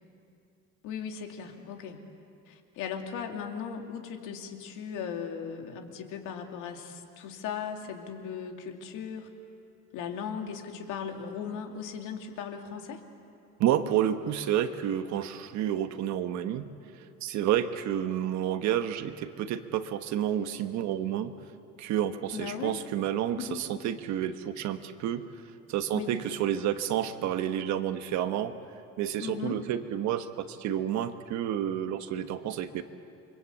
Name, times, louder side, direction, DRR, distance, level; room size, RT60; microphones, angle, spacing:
voice 1, 0.8-2.0 2.5-9.3 9.9-13.0 22.3-22.8 23.4-23.6 25.9-26.2 29.2-29.6, left 7 dB, 80° left, 3 dB, 2.7 m, -37 dB
voice 2, 13.6-16.7 17.2-21.3 21.8-25.3 25.7-28.6 29.0-32.8, right 10 dB, 65° right, 9 dB, 1.3 m, -30 dB
28.5 x 23.5 x 8.4 m, 2.5 s
cardioid pair, 150°, 30 cm